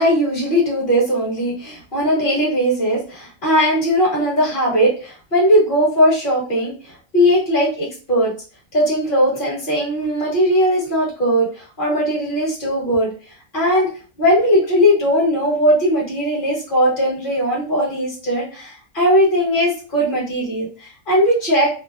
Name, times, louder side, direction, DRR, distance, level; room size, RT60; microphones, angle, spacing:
voice 1, 0.0-6.7 7.1-8.3 8.7-13.1 13.5-13.9 14.2-21.7, equal, 40° left, -4 dB, 1.1 m, -18 dB
2.6 x 2.0 x 2.3 m, 0.37 s
omnidirectional pair, 1.5 m